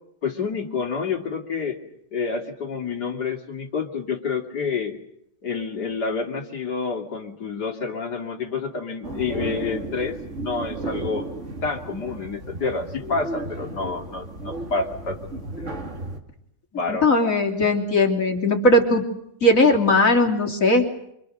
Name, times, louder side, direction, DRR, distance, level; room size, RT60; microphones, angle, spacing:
voice 1, 0.2-1.8 2.1-5.0 5.4-11.2 11.6-15.9 16.7-17.1, left 4 dB, 60° left, 3 dB, 3.3 m, -28 dB
sound 1, 9.0-16.2, right 2 dB, 40° right, 2.8 m, -34 dB
voice 2, 16.9-19.1 19.4-20.9, left 1 dB, 45° left, 1 dB, 3.6 m, -18 dB
27.5 x 26.5 x 6.6 m, 0.77 s
omnidirectional pair, 2.0 m